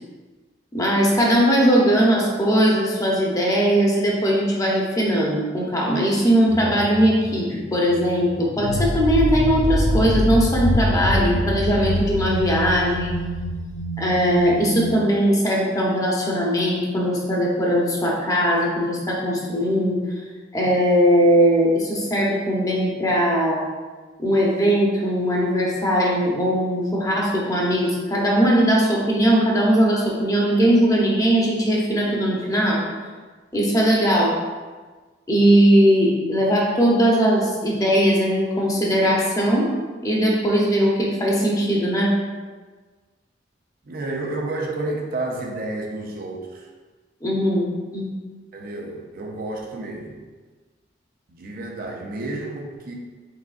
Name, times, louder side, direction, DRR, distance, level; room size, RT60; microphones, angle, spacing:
voice 1, 0.7-13.1 14.0-20.0 20.5-23.6 24.2-32.8 33.5-34.4 35.3-39.7 40.0-42.1 47.2-47.7 47.9-48.1, equal, 20° left, -3 dB, 0.8 m, -19 dB
sound 1, 6.5-15.0, left 1 dB, 40° left, 0.4 m, -25 dB
voice 2, 43.8-46.7 48.5-50.2 51.3-52.9, right 2 dB, 50° right, 0 dB, 0.5 m, -30 dB
4.7 x 3.8 x 2.5 m, 1.4 s
head